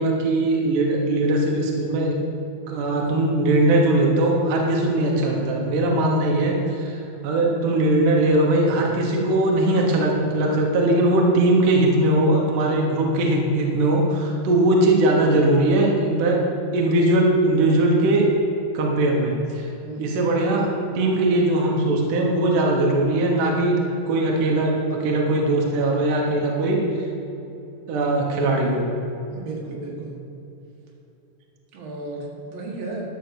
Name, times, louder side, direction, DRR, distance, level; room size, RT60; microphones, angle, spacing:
voice 1, 0.0-2.2 2.7-16.5 16.7-18.3 18.7-19.7 20.0-20.7 21.0-23.8 24.1-26.9 27.9-28.8, right 2 dB, 70° right, -1 dB, 2.6 m, -20 dB
voice 2, 19.8-20.2 29.3-30.2 31.7-33.1, right 2 dB, 85° right, -3 dB, 3.5 m, -34 dB
11.5 x 5.6 x 6.8 m, 2.9 s
omnidirectional pair, 4.1 m